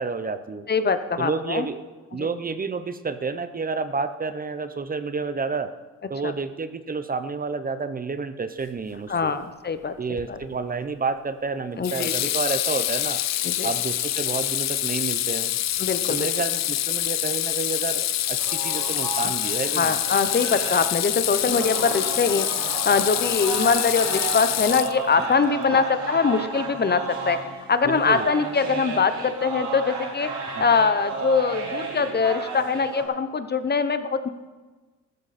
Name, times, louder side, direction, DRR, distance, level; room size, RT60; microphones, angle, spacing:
voice 1, 0.0-0.7 1.2-1.8 2.1-5.7 6.1-9.3 10.0-13.2 13.6-15.6 16.1-19.9 27.8-28.3 30.5-30.6, right 4 dB, 30° right, 11 dB, 0.9 m, -30 dB
voice 2, 0.7-1.7 2.2-2.3 6.2-6.3 9.1-10.0 10.3-10.4 11.8-12.1 13.4-13.7 15.8-16.3 19.8-30.3 30.6-34.3, left 5 dB, 35° left, 11 dB, 1.0 m, -23 dB
Water tap faucet / Sink (filling or washing), 10.2-10.5 11.8-25.3, left 13 dB, 60° left, 0.6 m, -26 dB
sound 1, 18.4-33.0, right 4 dB, 70° right, 3.6 m, -33 dB
15.0 x 13.5 x 4.3 m, 1.3 s
cardioid pair, 90°, 30 cm